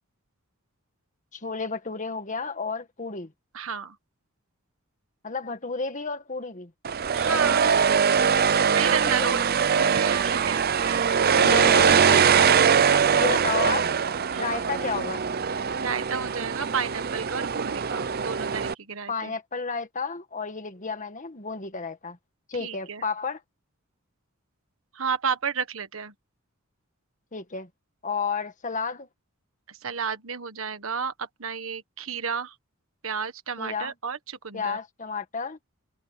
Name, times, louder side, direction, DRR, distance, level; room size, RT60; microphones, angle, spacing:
voice 1, 1.3-3.3 5.2-6.7 9.0-9.4 11.4-12.7 13.1-13.9 14.4-15.2 19.1-22.2 22.5-23.4 27.3-27.7 28.0-29.1 33.6-33.9 34.5-35.6, left 4 dB, 35° left, 1.8 m, -31 dB
voice 2, 3.5-4.0 7.1-7.7 8.7-9.4 9.7-11.1 12.3-13.1 13.8-13.9 14.3-14.6 15.8-19.3 22.6-23.0 24.9-26.1 29.7-32.5 33.0-34.8, right 6 dB, 70° right, 1.5 m, -32 dB
sound 1, 6.8-18.7, right 7 dB, 45° right, 0.6 m, -22 dB
head